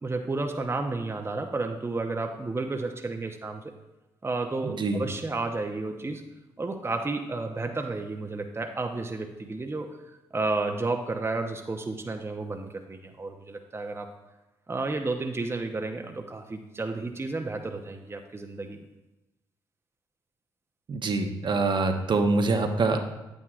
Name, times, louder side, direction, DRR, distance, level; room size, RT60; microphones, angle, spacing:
voice 1, 0.0-3.7 4.2-6.2 6.6-14.1 14.7-18.9, right 3 dB, 25° right, 4 dB, 0.8 m, -32 dB
voice 2, 4.6-5.0 20.9-23.0, right 3 dB, 50° right, 5 dB, 1.0 m, -25 dB
9.2 x 8.9 x 2.5 m, 1.0 s
hypercardioid pair, 45°, 10 cm